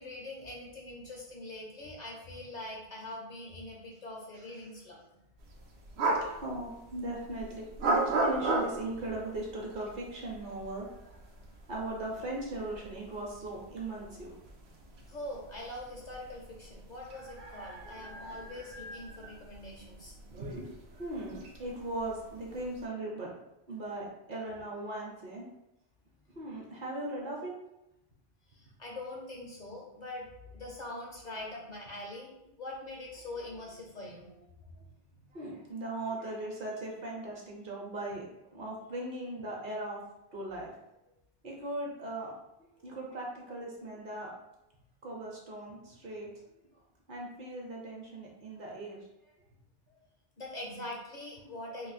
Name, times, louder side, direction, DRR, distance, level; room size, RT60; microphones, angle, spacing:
voice 1, 0.0-5.2 15.1-20.1 28.5-30.3 30.5-34.3 50.4-51.9, left 1 dB, 55° left, -1 dB, 0.6 m, -43 dB
sound 1, 5.4-22.9, right 2 dB, 85° right, 0.9 m, -38 dB
voice 2, 6.2-10.9 11.7-14.4 17.8-18.4 20.3-20.7 21.0-23.4 23.7-25.5 26.3-27.5 34.7-34.8 35.3-38.2 38.5-40.0 40.3-40.8 41.4-42.3 42.6-44.3 45.0-46.3 47.1-49.3 51.7-51.8, right 2 dB, 55° right, -2 dB, 0.9 m, -39 dB
2.6 x 2.4 x 4.0 m, 0.87 s
omnidirectional pair, 1.1 m